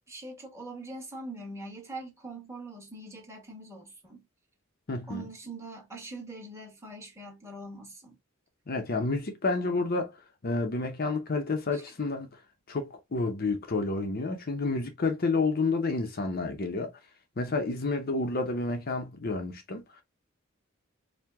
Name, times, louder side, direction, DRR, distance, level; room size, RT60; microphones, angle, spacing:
voice 1, 0.1-4.2 5.1-8.2 11.7-11.8, right 2 dB, 15° right, 1.4 m, -43 dB
voice 2, 4.9-5.2 8.7-10.2 10.4-12.3 12.7-16.9 17.4-19.8, left 3 dB, 45° left, 0.7 m, -30 dB
4.6 x 2.2 x 3.4 m
head